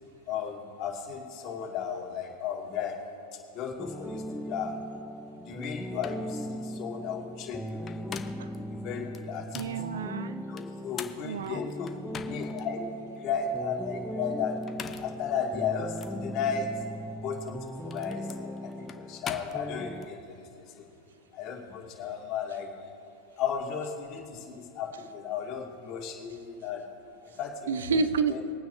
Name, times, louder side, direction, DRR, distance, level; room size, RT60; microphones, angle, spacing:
voice 1, 0.3-3.0 3.5-4.8 5.3-8.2 8.5-9.7 10.5-11.9 12.3-12.9 13.2-14.6 15.0-16.7 17.2-20.4 20.7-20.8 21.3-22.7 23.4-26.8 27.4-28.0 28.3-28.4, left 6 dB, 45° left, -1 dB, 2.4 m, -35 dB
sound 1, 3.8-20.1, equal, ahead, 0.4 m, -39 dB
sound 2, 5.6-5.7 6.0-6.3 7.7-8.6 9.1-9.8 10.6-12.6 13.1-13.2 14.5-15.2 16.0-16.2 17.4-20.1, left 7 dB, 30° left, 0.8 m, -42 dB
voice 2, 9.5-10.4 11.2-11.7 27.7-28.5, right 5 dB, 80° right, 12 dB, 0.7 m, -29 dB
22.5 x 9.1 x 2.8 m, 2.6 s
hypercardioid pair, 105°, 0 cm